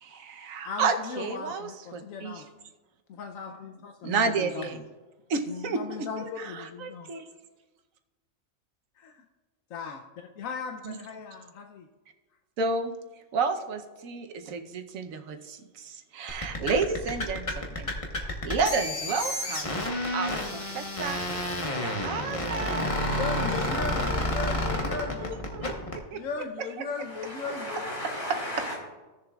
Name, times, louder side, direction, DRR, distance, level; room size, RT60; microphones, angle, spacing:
voice 1, 0.0-2.4 4.0-4.8 5.3-7.2 10.8-11.0 12.6-12.9 13.3-17.9 18.2-19.8 20.1-21.2 21.7-25.7 26.1-26.2, right 4 dB, 80° right, 7 dB, 1.2 m, -32 dB
voice 2, 0.6-2.7 3.1-4.7 5.5-7.1 9.0-9.2 9.7-10.0 10.4-11.9 23.1-25.4 26.1-27.9, left 5 dB, 80° left, 4 dB, 1.0 m, -37 dB
sound 1, 16.3-26.0, left 1 dB, 25° left, 1.0 m, -30 dB
voice 3, 27.0-28.8, equal, 65° left, -5 dB, 3.8 m, -35 dB
16.0 x 6.9 x 2.3 m, 1.2 s
omnidirectional pair, 1.4 m